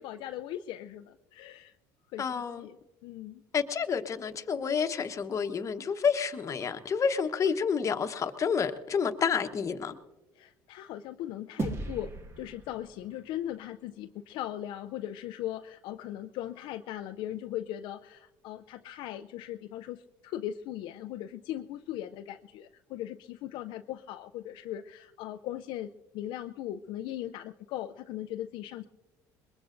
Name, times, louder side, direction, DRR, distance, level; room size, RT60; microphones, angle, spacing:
voice 1, 0.0-1.7 2.1-2.8 3.0-3.4 10.4-28.9, left 12 dB, 70° left, 0.5 m, -39 dB
voice 2, 2.2-2.7 3.5-9.9, left 6 dB, 35° left, 1.0 m, -29 dB
sound 1, 11.6-14.2, right 3 dB, 30° right, 1.5 m, -38 dB
22.5 x 21.5 x 2.6 m
supercardioid pair, 90°, 9 cm